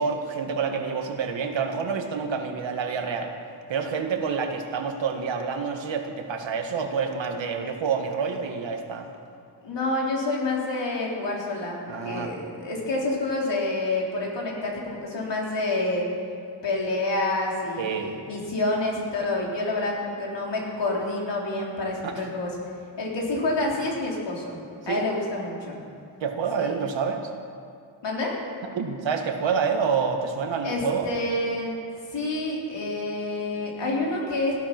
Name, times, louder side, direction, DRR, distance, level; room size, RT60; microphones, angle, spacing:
voice 1, 0.0-3.3 3.7-9.1 11.9-12.3 17.8-18.1 22.0-22.1 24.9-25.1 26.2-27.3 28.7-31.1, right 5 dB, 85° right, 4 dB, 1.7 m, -28 dB
voice 2, 9.6-11.7 12.0-16.1 16.6-22.5 23.0-24.6 24.9-25.8 26.6-26.7 28.0-28.3 30.6-31.7 32.1-34.5, left 2 dB, 70° left, -2 dB, 3.8 m, -28 dB
18.0 x 12.0 x 6.1 m, 2.4 s
wide cardioid pair, 115°, 44 cm